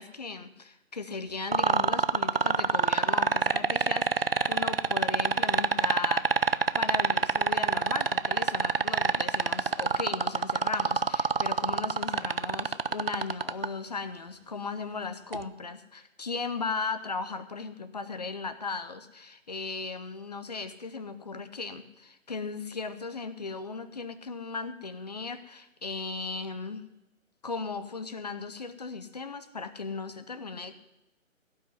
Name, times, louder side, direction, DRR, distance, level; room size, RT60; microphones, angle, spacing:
voice 1, 0.0-6.5 6.8-26.8 27.4-30.8, left 4 dB, 30° left, 11 dB, 0.8 m, -37 dB
sound 1, 1.5-13.7 15.3-15.4, right 5 dB, 45° right, 0.5 m, -24 dB
16.5 x 6.1 x 9.5 m, 0.92 s
figure-of-eight pair, 150°, 40 cm